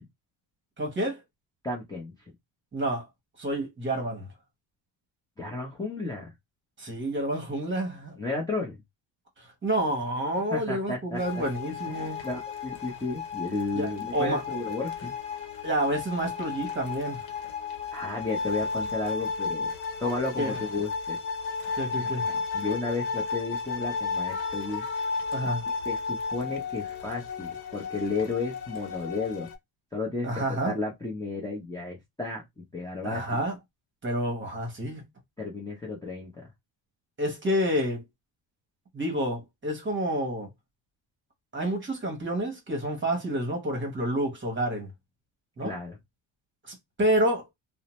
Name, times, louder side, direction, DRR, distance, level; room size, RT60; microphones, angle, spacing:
voice 1, 0.8-1.2 2.7-3.1 3.4-4.3 6.8-8.1 9.6-12.2 13.7-14.4 15.6-17.2 20.4-20.6 21.8-22.3 25.3-25.6 30.2-30.7 33.0-33.5 34.0-35.0 37.2-38.0 38.9-40.5 41.5-44.9 45.6-45.7 46.7-47.5, right 1 dB, 25° right, 1.1 m, -29 dB
voice 2, 1.6-2.1 5.4-6.3 8.2-8.8 10.5-11.2 11.9-15.1 17.9-19.7 20.0-21.2 21.9-24.8 25.9-29.5 29.9-33.2 35.4-36.5 45.6-46.0, left 3 dB, 10° left, 0.6 m, -33 dB
sound 1, 11.1-29.6, left 4 dB, 75° left, 0.9 m, -33 dB
2.6 x 2.1 x 3.0 m
cardioid pair, 120°, 46 cm